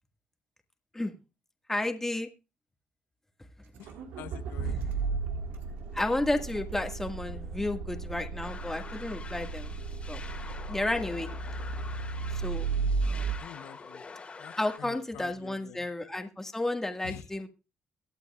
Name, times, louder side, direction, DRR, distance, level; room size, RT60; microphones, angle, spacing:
voice 1, 1.7-2.3 5.9-9.7 10.1-10.2 10.7-11.3 12.4-12.7 14.6-17.5, left 2 dB, 10° left, 5 dB, 1.7 m, -32 dB
voice 2, 3.8-4.9 13.1-14.0 14.4-15.9 17.0-17.3, left 11 dB, 85° left, 10 dB, 0.8 m, -47 dB
Accelerating revving vroom, 3.8-13.4, right 4 dB, 85° right, 1.8 m, -34 dB
sound 1, 8.4-14.8, left 4 dB, 35° left, 2.1 m, -46 dB
22.5 x 8.3 x 2.4 m, 0.29 s
supercardioid pair, 80°, 4 cm